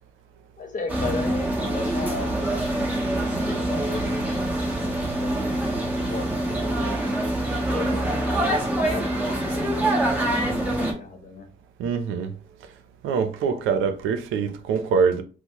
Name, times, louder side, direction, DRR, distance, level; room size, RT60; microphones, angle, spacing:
voice 1, 0.6-5.8 6.1-7.0 7.6-11.5, left 3 dB, 40° left, 1.0 m, -37 dB
sound 1, 0.9-10.9, right 1 dB, 10° right, 1.1 m, -25 dB
voice 2, 11.8-12.3 13.0-15.2, right 6 dB, 90° right, 0.5 m, -24 dB
4.4 x 2.1 x 2.9 m
cardioid pair, 90°, 20 cm